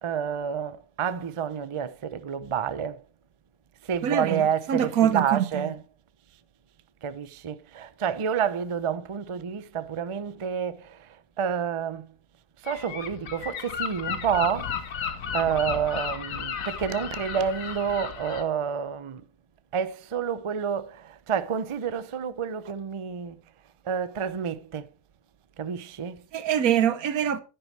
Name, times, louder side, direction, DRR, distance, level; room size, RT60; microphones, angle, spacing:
voice 1, 0.0-3.0 3.8-5.8 7.0-12.1 12.6-19.2 19.7-23.4 23.8-24.9 25.6-26.2, right 7 dB, 45° right, 0.4 m, -29 dB
voice 2, 4.0-5.7 26.3-27.4, right 9 dB, 90° right, 1.3 m, -24 dB
Gull seagull, 12.7-18.4, left 7 dB, 70° left, 1.4 m, -34 dB
10.5 x 9.3 x 3.3 m
omnidirectional pair, 1.5 m